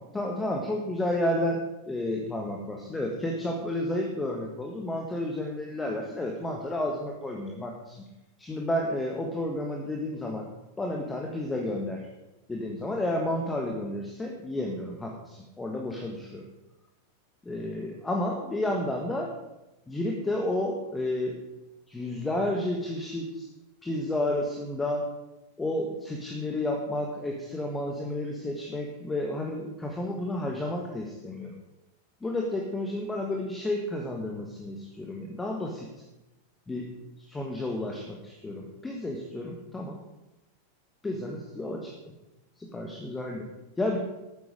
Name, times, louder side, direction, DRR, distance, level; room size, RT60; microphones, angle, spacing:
voice 1, 0.1-8.1 8.4-10.5 10.8-12.1 12.5-16.5 17.4-19.3 19.9-21.4 21.9-23.5 23.8-25.1 25.6-31.6 32.2-35.9 36.7-40.0 41.0-41.9 42.6-43.5 43.8-44.0, left 1 dB, 10° left, 1 dB, 1.6 m, -31 dB
13.5 x 9.5 x 5.0 m, 0.97 s
figure-of-eight pair, 90°, 0 cm